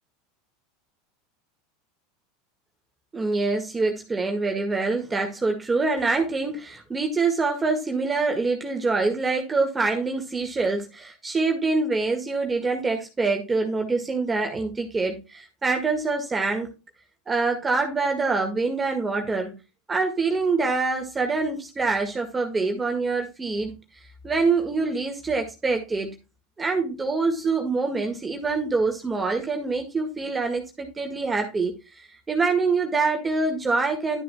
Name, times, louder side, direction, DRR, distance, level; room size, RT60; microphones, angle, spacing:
voice 1, 3.1-16.7 17.3-19.5 19.9-23.7 24.2-26.1 26.6-34.2, right 3 dB, 20° right, 3 dB, 1.8 m, -25 dB
12.0 x 7.6 x 2.3 m, 0.27 s
hypercardioid pair, 90°, 0 cm